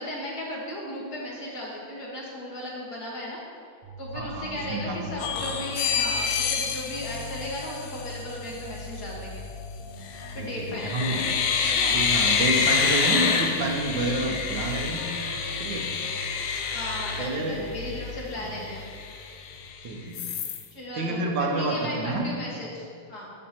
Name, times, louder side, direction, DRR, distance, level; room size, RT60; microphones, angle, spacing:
voice 1, 0.0-3.4 4.0-9.4 10.4-11.4 11.6-12.0 16.7-18.8 20.7-23.3, left 1 dB, 55° left, -4 dB, 2.0 m, -36 dB
sound 1, 3.8-20.2, left 2 dB, 90° right, 1.7 m, -40 dB
voice 2, 4.1-5.1 10.4-11.2 11.9-15.0 15.6-15.9 17.2-17.7 18.4-18.5 19.8-20.3 20.9-22.2, right 2 dB, 70° right, 1 dB, 1.5 m, -29 dB
sound 2, 5.2-8.2 10.0-10.4 10.8-18.0 18.5-18.6 18.8-19.7 20.1-20.6, left 6 dB, 70° left, 1.2 m, -27 dB
11.5 x 6.5 x 2.9 m, 2.2 s
omnidirectional pair, 2.2 m